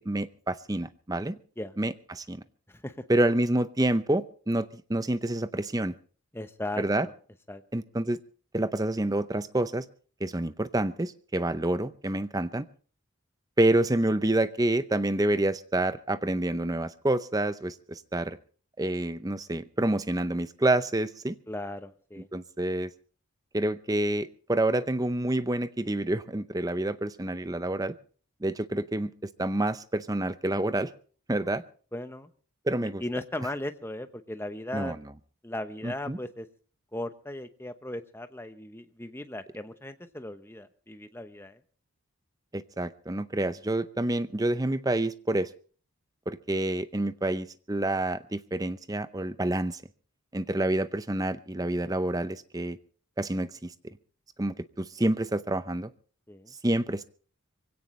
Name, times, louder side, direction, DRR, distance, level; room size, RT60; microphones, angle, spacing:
voice 1, 0.1-1.4 1.8-2.4 3.1-5.9 6.8-7.1 7.7-8.2 8.5-9.9 10.2-12.6 13.6-18.4 18.8-21.4 22.3-22.9 23.5-27.9 28.4-30.9 31.3-31.6 32.7-33.0 34.7-35.0 35.8-36.2 42.5-45.5 46.3-49.8 50.3-52.8 53.2-53.7 54.4-55.9 56.6-57.0, right 1 dB, 15° right, 13 dB, 0.6 m, -28 dB
voice 2, 2.7-3.0 6.3-7.1 7.5-7.6 21.5-22.3 31.5-31.6 31.9-32.3 32.8-34.9 35.4-36.5 36.9-41.6 56.3-56.5, left 1 dB, 10° left, 9 dB, 0.9 m, -37 dB
23.5 x 17.0 x 3.2 m, 0.43 s
head